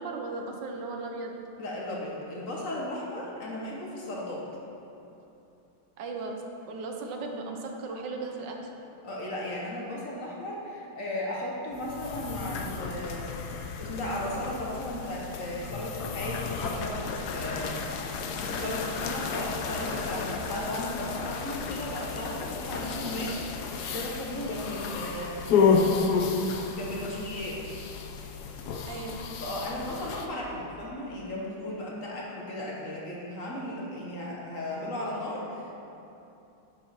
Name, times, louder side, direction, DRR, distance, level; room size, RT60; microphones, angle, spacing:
voice 1, 0.0-1.4 6.0-8.7 28.9-29.3, right 3 dB, 65° right, 2 dB, 1.5 m, -36 dB
voice 2, 1.6-4.4 9.0-13.3 13.8-25.5 26.8-27.6 29.4-35.7, left 1 dB, 45° left, -4 dB, 1.4 m, -35 dB
sound 1, 11.7-30.3, left 5 dB, 65° left, 1.0 m, -31 dB
11.5 x 7.1 x 4.4 m, 2.8 s
omnidirectional pair, 2.4 m